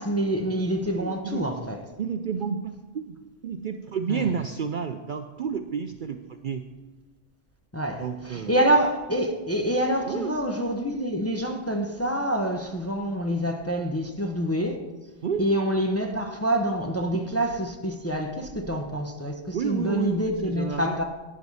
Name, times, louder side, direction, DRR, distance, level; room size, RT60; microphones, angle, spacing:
voice 1, 0.0-1.8 4.1-4.3 7.7-14.8 15.4-21.0, right 1 dB, 15° left, 0.6 m, -26 dB
voice 2, 1.0-1.4 2.0-3.2 3.4-6.6 8.0-8.8 10.1-10.3 15.2-15.4 19.5-20.2 20.5-21.0, right 7 dB, 55° right, 0.6 m, -30 dB
12.0 x 9.7 x 4.1 m
omnidirectional pair, 1.2 m